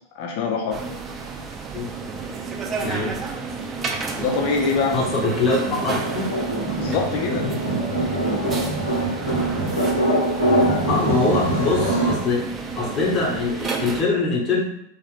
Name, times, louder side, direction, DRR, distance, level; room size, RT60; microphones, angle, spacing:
voice 1, 0.1-0.8 4.1-5.0 6.7-7.5, left 4 dB, 50° left, 1 dB, 0.7 m, -24 dB
sound 1, 0.7-14.0, right 4 dB, 20° right, 0.4 m, -31 dB
voice 2, 2.8-3.2 4.9-6.4 10.9-12.5 12.7-14.6, left 3 dB, 25° left, -2 dB, 0.9 m, -23 dB
sound 2, 4.2-12.1, right 1 dB, 85° left, 0.9 m, -24 dB
3.0 x 2.4 x 3.3 m, 0.73 s
figure-of-eight pair, 90°, 0 cm